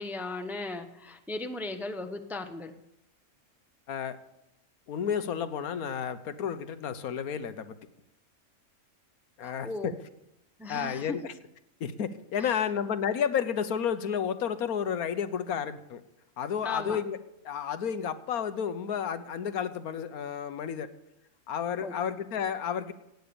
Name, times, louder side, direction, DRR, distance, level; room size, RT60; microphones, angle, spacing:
voice 1, 0.0-2.7 9.4-10.0 10.6-11.2 16.6-17.0 21.8-21.9, left 3 dB, ahead, 7 dB, 0.7 m, -36 dB
voice 2, 4.9-7.8 9.4-9.9 10.7-11.3 11.8-16.0 16.4-17.2 17.4-20.9 21.5-22.9, left 8 dB, 80° left, 11 dB, 1.4 m, -31 dB
16.0 x 9.3 x 6.9 m, 0.87 s
omnidirectional pair, 1.5 m